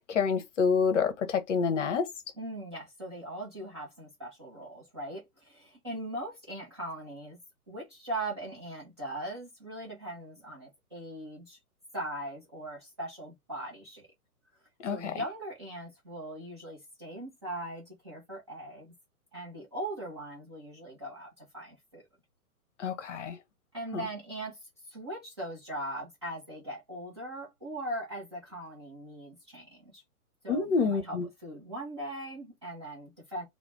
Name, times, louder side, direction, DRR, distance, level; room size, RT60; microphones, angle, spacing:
voice 1, 0.1-2.1 14.8-15.2 22.8-23.4 23.9-24.1 30.5-31.3, left 5 dB, 50° left, 0.7 m, -28 dB
voice 2, 2.4-7.4 7.7-11.6 11.9-14.1 14.9-18.9 19.3-22.0 23.7-24.6 24.9-30.0 30.4-33.4, right 1 dB, 20° right, 0.4 m, -40 dB
2.4 x 2.0 x 3.1 m
figure-of-eight pair, 120°, 45 cm